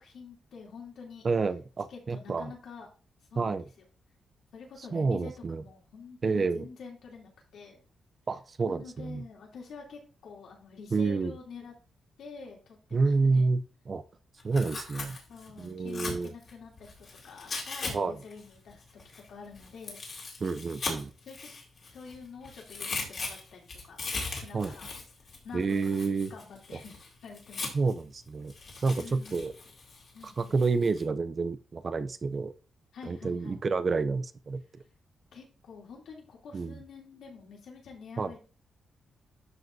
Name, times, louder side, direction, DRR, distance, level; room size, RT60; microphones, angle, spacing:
voice 1, 0.0-1.3 1.9-2.9 3.3-3.6 4.5-7.8 8.7-11.7 12.2-13.5 15.3-20.0 20.5-20.6 21.2-21.5 21.8-24.0 24.3-24.9 25.4-27.8 28.9-29.5 30.1-30.5 32.9-33.6 35.3-38.4, left 5 dB, 70° left, -1 dB, 2.8 m, -47 dB
voice 2, 1.2-2.5 3.4-3.6 4.9-5.6 6.2-6.7 8.3-9.2 10.9-11.3 12.9-13.6 13.9-14.0 14.4-15.2 15.6-16.3 17.9-18.2 20.4-21.1 24.5-24.7 25.5-26.3 27.7-28.5 28.8-29.5 30.2-32.5 33.1-34.6 36.5-36.8 38.2-38.3, right 4 dB, 30° right, 12 dB, 0.4 m, -29 dB
Tearing, 14.4-17.9 18.2-22.1 22.4-28.0 28.5-31.0, left 3 dB, 40° left, 2.3 m, -39 dB
12.0 x 5.1 x 2.6 m, 0.36 s
wide cardioid pair, 175°, 0 cm